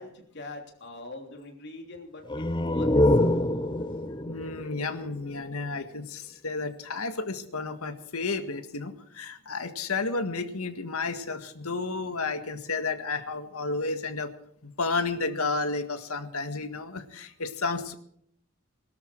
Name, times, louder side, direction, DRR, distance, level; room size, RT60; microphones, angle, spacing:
voice 1, 0.0-3.6, left 2 dB, 50° left, 2 dB, 3.3 m, -43 dB
sound 1, 2.2-5.8, left 1 dB, 20° left, 0.6 m, -26 dB
voice 2, 4.3-14.3 14.6-17.9, left 3 dB, 85° left, 8 dB, 1.8 m, -32 dB
21.5 x 13.0 x 4.6 m, 0.68 s
head